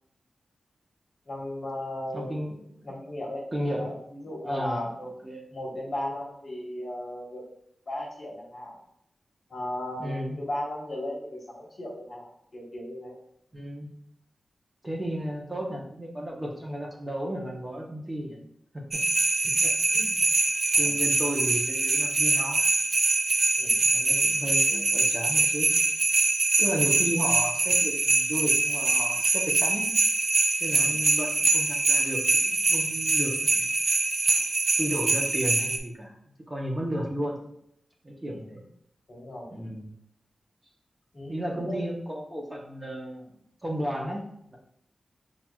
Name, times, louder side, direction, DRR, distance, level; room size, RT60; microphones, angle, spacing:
voice 1, 1.2-2.4 2.8-3.5 3.8-5.0 5.5-7.4 7.9-8.8 9.5-13.2 19.4-19.5 19.9-20.3 20.7-20.9 23.6-23.8 30.8-30.9 38.3-38.4 39.1-39.5 41.1-41.9, left 1 dB, 50° left, -4 dB, 1.3 m, -36 dB
voice 2, 2.1-2.6 3.5-3.9 4.4-5.4 10.0-10.4 13.5-13.9 14.8-18.4 18.9-19.0 19.6-19.7 20.2-20.3 20.8-22.6 23.9-25.7 26.6-29.9 30.6-33.7 34.8-36.1 36.5-37.5 38.0-38.7 39.5-39.9 41.3-43.3 43.6-44.2, equal, 20° right, -2 dB, 0.8 m, -33 dB
sound 1, 18.9-35.8, right 3 dB, 55° right, 0.4 m, -24 dB
5.8 x 2.5 x 2.3 m, 0.73 s
wide cardioid pair, 100°, 0 cm